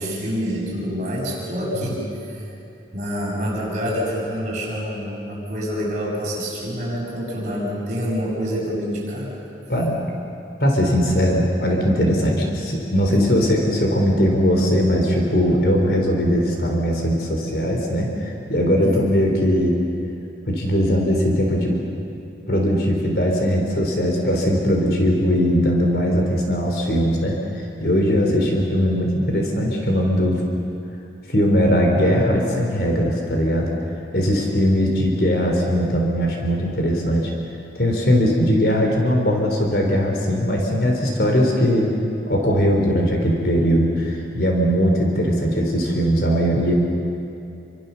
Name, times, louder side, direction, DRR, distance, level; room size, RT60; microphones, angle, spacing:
voice 1, 0.0-2.0 2.3-2.4 2.9-9.3 13.1-13.3 18.8-19.2, equal, 40° right, -5 dB, 7.5 m, -27 dB
voice 2, 9.7-10.0 10.6-19.8 20.5-21.8 22.5-27.4 27.8-30.4 31.3-33.7 34.1-37.2 37.8-41.9 42.3-46.7, equal, 60° left, 1 dB, 3.7 m, -20 dB
28.5 x 25.0 x 7.1 m, 2.8 s
head